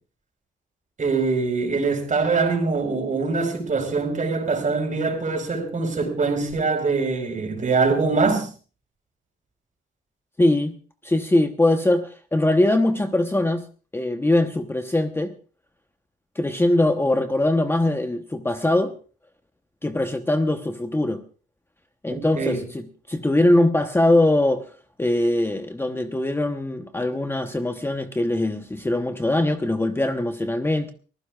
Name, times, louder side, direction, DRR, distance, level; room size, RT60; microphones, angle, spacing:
voice 1, 1.0-8.5 22.1-22.6, right 4 dB, 40° right, 4.7 m, -23 dB
voice 2, 10.4-10.8 11.0-13.7 13.9-15.3 16.3-18.9 19.8-21.2 22.0-24.6 25.0-30.9, left 1 dB, 10° left, 1.0 m, -22 dB
23.5 x 15.5 x 2.4 m
cardioid pair, 90°, 20 cm